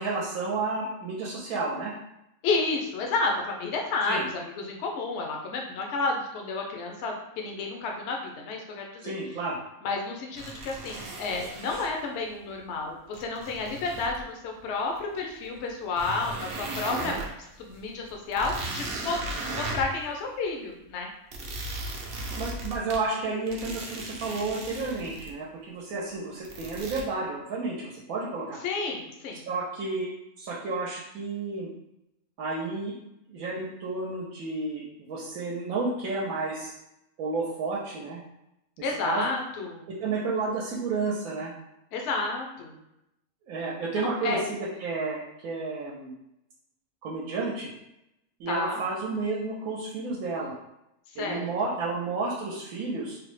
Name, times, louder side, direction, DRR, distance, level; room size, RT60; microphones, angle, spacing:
voice 1, 0.0-1.9 4.1-4.2 9.0-9.6 16.7-17.2 19.3-19.6 22.3-28.6 29.5-30.1 30.4-31.7 32.4-32.9 33.3-36.7 37.2-38.2 39.0-39.3 40.0-41.5 43.5-44.4 44.8-45.2 45.4-46.1 47.0-47.7 48.4-50.5 51.2-53.2, right 3 dB, 85° right, -4 dB, 1.1 m, -31 dB
voice 2, 2.4-9.1 9.8-21.1 28.6-29.4 38.8-39.9 41.9-42.8 43.9-44.4 48.5-48.8 51.1-51.4, left 3 dB, 65° left, 1 dB, 0.7 m, -31 dB
sound 1, 10.3-11.9 13.1-14.2 15.0-15.1 15.6-15.7 16.0-17.3 17.8-17.9 18.1-20.0 21.3-23.0 23.5-25.3 26.4-27.0, right 2 dB, 60° right, 0.7 m, -37 dB
3.3 x 2.0 x 3.1 m, 0.85 s
omnidirectional pair, 1.5 m